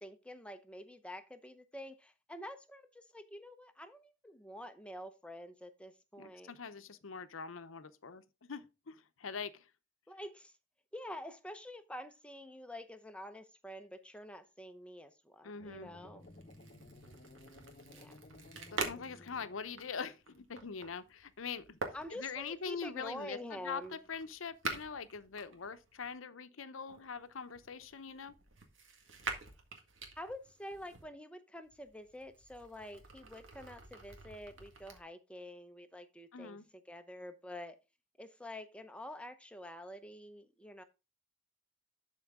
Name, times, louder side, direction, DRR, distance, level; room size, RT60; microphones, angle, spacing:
voice 1, 0.0-6.5 10.1-10.5 10.9-16.3 17.9-18.2 21.9-24.0 30.2-37.8 38.2-40.8, left 1 dB, 5° left, 0.7 m, -48 dB
voice 2, 6.2-9.6 15.4-15.9 18.7-21.8 22.1-28.3 36.3-36.7, left 5 dB, 90° left, 0.7 m, -43 dB
sound 1, 15.6-19.9, left 2 dB, 40° left, 0.9 m, -56 dB
sound 2, 16.2-26.1 26.9-31.0 31.6-35.0, right 3 dB, 75° right, 1.8 m, -46 dB
11.5 x 4.5 x 3.6 m
head